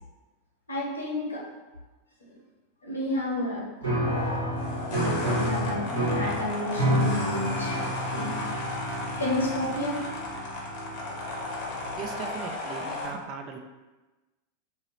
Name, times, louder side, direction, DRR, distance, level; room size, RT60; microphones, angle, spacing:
voice 1, 0.7-1.4 2.3-2.4 2.8-3.7 4.9-8.8 9.2-10.0, left 1 dB, 75° left, -4 dB, 0.9 m, -31 dB
Piano, 3.8-12.3, right 1 dB, 80° right, 1.2 m, -30 dB
sound 1, 4.0-13.1, left 2 dB, 45° left, 0.8 m, -35 dB
voice 2, 12.0-13.6, right 6 dB, 40° right, 5 dB, 0.3 m, -38 dB
2.8 x 2.7 x 2.9 m, 1.1 s
figure-of-eight pair, 90°, 0 cm